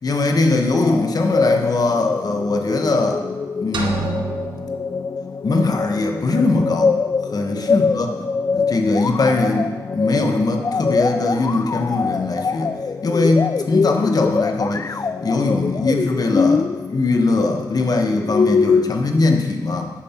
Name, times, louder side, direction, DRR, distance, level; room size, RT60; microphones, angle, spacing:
voice 1, 0.0-3.2 3.6-4.1 5.4-7.0 7.3-8.1 8.5-12.7 13.0-14.8 15.2-19.9, left 3 dB, 55° left, 3 dB, 1.2 m, -20 dB
sound 1, 0.8-18.9, left 5 dB, 40° left, 0.4 m, -23 dB
sound 2, 3.7-5.7, right 4 dB, 80° right, 1.3 m, -29 dB
10.0 x 9.1 x 4.5 m, 1.3 s
cardioid pair, 80°, 8 cm